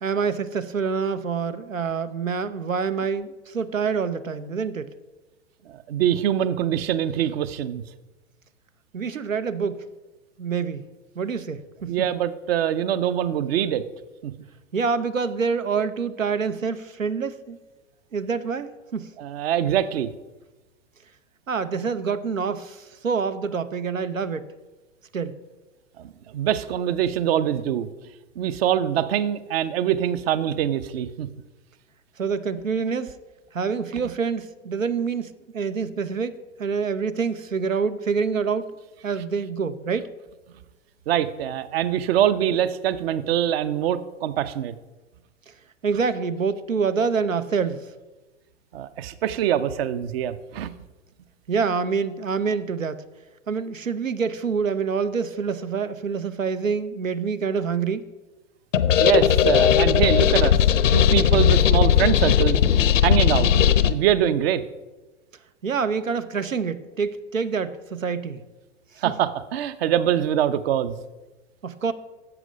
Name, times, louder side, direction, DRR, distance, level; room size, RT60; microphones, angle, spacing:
voice 1, 0.0-4.9 8.9-9.9 10.4-10.8 11.2-12.1 14.7-17.6 18.1-19.1 21.5-24.5 25.1-25.4 32.2-33.2 33.5-38.7 39.0-40.1 45.5-45.6 45.8-47.9 51.5-53.0 53.5-58.1 63.4-63.7 65.6-68.4 69.0-69.1 71.6-71.9, right 5 dB, 85° right, 0.7 m, -26 dB
voice 2, 5.7-7.8 11.9-13.8 14.2-14.3 19.2-20.1 26.0-27.9 28.4-31.3 41.1-44.8 48.7-50.7 59.0-60.6 60.9-63.5 63.8-64.6 69.0-71.0, right 10 dB, 50° right, 0.8 m, -24 dB
sound 1, 58.7-63.9, left 9 dB, 70° left, 0.7 m, -18 dB
11.0 x 7.8 x 5.1 m
figure-of-eight pair, 100°, 38 cm